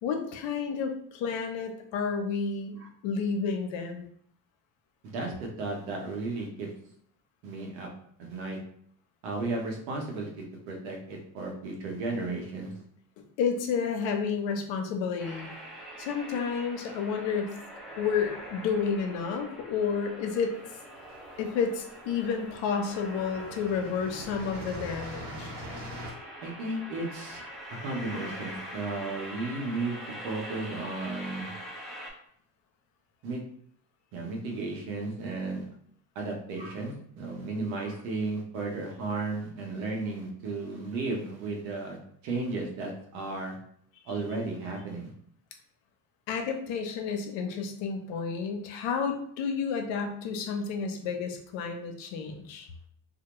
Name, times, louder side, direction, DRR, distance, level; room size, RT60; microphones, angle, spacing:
voice 1, 0.0-4.1 13.4-15.5 16.0-17.6 18.0-20.6 21.4-25.5 46.3-52.7, left 6 dB, 65° left, 4 dB, 0.6 m, -31 dB
voice 2, 5.0-6.7 7.4-7.9 8.2-8.6 9.2-12.7 26.4-27.4 27.8-30.0 30.2-31.5 33.2-33.4 34.1-35.6 36.2-42.0 42.2-43.6 44.1-45.1, right 3 dB, 90° right, 0 dB, 0.8 m, -34 dB
sound 1, 15.2-32.1, equal, ahead, 0.5 m, -43 dB
sound 2, 20.7-21.6 22.5-22.6 22.9-26.1, equal, 55° right, 0.9 m, -42 dB
2.2 x 2.1 x 2.9 m, 0.64 s
supercardioid pair, 80°, 48 cm